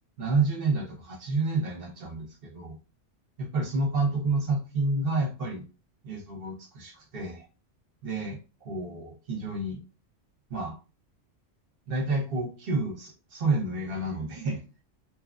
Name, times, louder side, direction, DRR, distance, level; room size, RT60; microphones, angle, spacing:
voice 1, 0.2-2.8 3.4-5.6 6.0-7.5 8.0-9.8 10.5-10.7 11.9-14.6, right 3 dB, 55° right, 2 dB, 0.9 m, -29 dB
2.9 x 2.3 x 2.4 m, 0.33 s
omnidirectional pair, 1.2 m